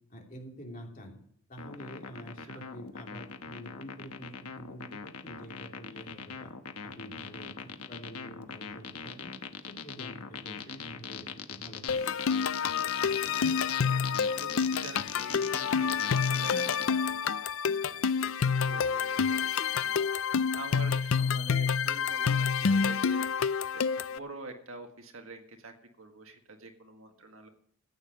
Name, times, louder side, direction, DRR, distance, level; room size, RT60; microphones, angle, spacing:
voice 1, 0.1-1.2 1.5-6.5 6.8-9.3 9.6-12.1, equal, 40° left, 1 dB, 3.0 m, -47 dB
sound 1, 1.6-16.9, left 7 dB, 90° left, 1.1 m, -41 dB
voice 2, 10.5-10.9 13.0-13.6 14.3-17.3 17.7-20.0 20.5-23.2 23.7-27.5, right 2 dB, 65° right, 5 dB, 1.8 m, -47 dB
sound 2, 11.9-24.2, left 6 dB, 65° left, 0.5 m, -28 dB
14.0 x 8.9 x 6.5 m, 0.64 s
head